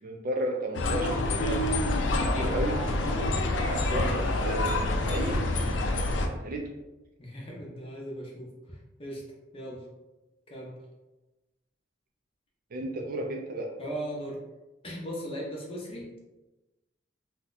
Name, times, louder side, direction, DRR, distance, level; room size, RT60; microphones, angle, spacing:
voice 1, 0.0-1.6 2.3-2.8 3.6-5.5 5.8-6.7 12.7-13.7, right 1 dB, 50° right, 1 dB, 0.4 m, -33 dB
sound 1, 0.7-6.3, left 2 dB, 75° left, 0.4 m, -27 dB
voice 2, 7.2-9.2 9.5-9.8 10.5-10.8 13.8-14.4 14.8-16.1, equal, 30° left, -3 dB, 0.6 m, -38 dB
2.7 x 2.1 x 3.8 m, 1.1 s
head